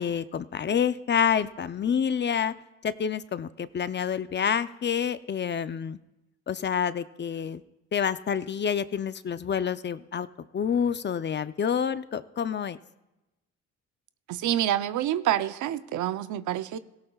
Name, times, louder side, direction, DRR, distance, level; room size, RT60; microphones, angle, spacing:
voice 1, 0.0-2.5 2.8-6.0 6.5-7.6 7.9-10.3 10.5-12.8, left 7 dB, 35° left, 13 dB, 0.6 m, -28 dB
voice 2, 14.3-16.8, right 12 dB, 75° right, 13 dB, 0.7 m, -27 dB
17.5 x 17.0 x 2.4 m, 0.97 s
cardioid pair, 90°, 30 cm